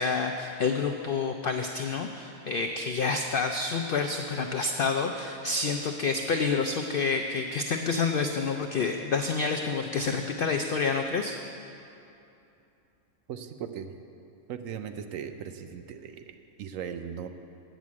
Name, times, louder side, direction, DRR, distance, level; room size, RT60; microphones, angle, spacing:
voice 1, 0.0-11.4, left 4 dB, 80° left, 4 dB, 0.5 m, -28 dB
voice 2, 13.3-13.9 14.5-17.3, right 8 dB, 70° right, 8 dB, 0.9 m, -38 dB
9.0 x 6.2 x 8.3 m, 2.7 s
omnidirectional pair, 1.5 m